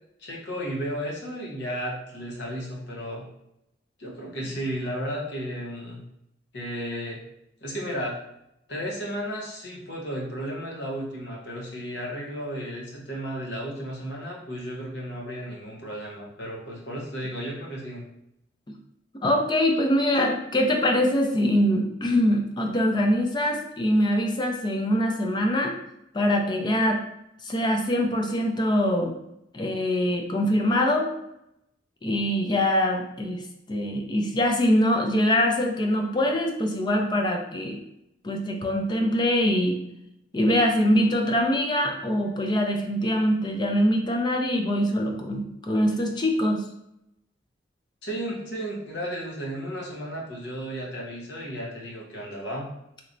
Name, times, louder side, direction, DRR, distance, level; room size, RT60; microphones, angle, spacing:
voice 1, 0.2-3.3 4.0-6.0 6.5-7.2 7.6-8.2 8.7-18.1 48.0-52.7, equal, 65° left, -3 dB, 1.0 m, -33 dB
voice 2, 19.2-25.8 26.1-27.0 27.4-29.2 29.5-31.1 32.0-33.4 33.7-37.8 38.2-39.8 40.3-46.6, equal, 25° left, 3 dB, 0.4 m, -23 dB
3.1 x 3.0 x 2.6 m, 0.81 s
head